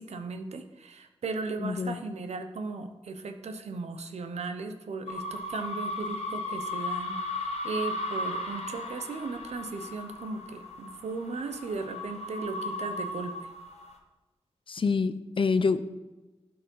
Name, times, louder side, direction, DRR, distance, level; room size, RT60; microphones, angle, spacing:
voice 1, 0.0-13.5, right 4 dB, 90° right, 0.9 m, -37 dB
voice 2, 1.6-2.0 14.7-15.9, left 4 dB, 55° left, 0.6 m, -26 dB
sound 1, 5.1-14.0, left 2 dB, 85° left, 1.3 m, -36 dB
11.5 x 4.9 x 5.5 m
wide cardioid pair, 70°, 11 cm